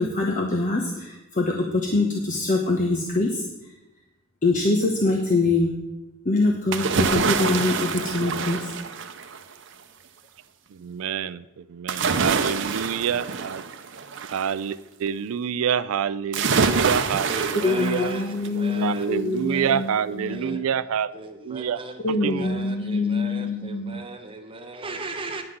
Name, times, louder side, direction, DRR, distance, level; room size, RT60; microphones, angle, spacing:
voice 1, 0.0-3.4 4.4-5.7 6.2-8.7 17.6-20.6 22.0-24.0, left 2 dB, 35° left, 0 dB, 1.0 m, -24 dB
sound 1, 6.7-9.5 11.9-14.5 16.3-18.6 19.0-19.1, right 5 dB, 60° right, 0.8 m, -26 dB
voice 2, 10.7-13.6 14.3-18.1 18.7-21.1 21.4-21.8 22.2-22.5, right 7 dB, 75° right, 16 dB, 0.4 m, -27 dB
voice 3, 17.3-19.1 19.5-20.6 21.1-25.4, right 3 dB, 25° right, 5 dB, 1.0 m, -37 dB
9.9 x 5.8 x 7.8 m, 0.97 s
head